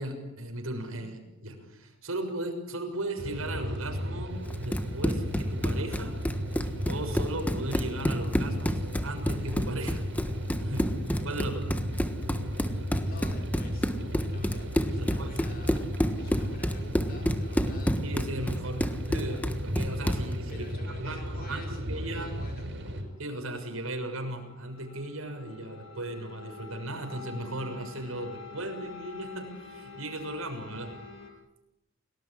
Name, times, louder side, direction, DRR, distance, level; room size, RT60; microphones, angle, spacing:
voice 1, 0.0-4.3 4.6-6.2 6.9-10.1 10.6-10.9 11.2-11.6 14.9-15.4 18.0-22.3 23.2-30.9, right 1 dB, 75° right, 5 dB, 6.7 m, -36 dB
sound 1, 3.2-23.0, equal, 60° right, 7.0 m, -34 dB
Run, 4.5-20.3, equal, 5° left, 1.4 m, -30 dB
voice 2, 13.0-18.0 20.5-22.7, left 2 dB, 45° left, 4 dB, 5.1 m, -49 dB
sound 2, 22.8-31.3, left 4 dB, 65° left, 7.5 m, -47 dB
30.0 x 20.0 x 9.8 m, 0.92 s
head